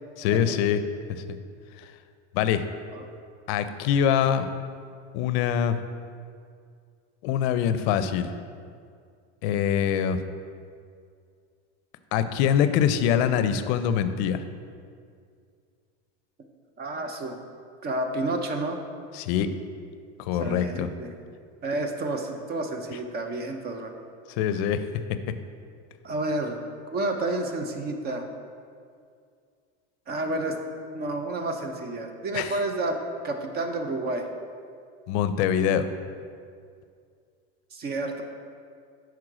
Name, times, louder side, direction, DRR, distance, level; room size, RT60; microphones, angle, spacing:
voice 1, 0.2-0.8 1.1-1.2 1.8-1.9 2.3-2.7 3.5-4.5 5.1-5.8 7.2-8.3 9.4-10.2 12.1-14.4 19.1-19.5 20.2-20.9 24.4-24.9 32.3-32.6 35.1-35.9, left 9 dB, 70° left, 11 dB, 0.5 m, -24 dB
voice 2, 16.8-17.4 17.8-18.8 20.4-21.1 21.6-23.9 26.0-26.6 26.9-28.3 30.1-30.6 30.9-33.0 33.2-34.3 37.7-38.2, right 2 dB, 30° right, 5 dB, 0.5 m, -30 dB
6.1 x 4.6 x 4.8 m, 2.2 s
supercardioid pair, 140°, 34 cm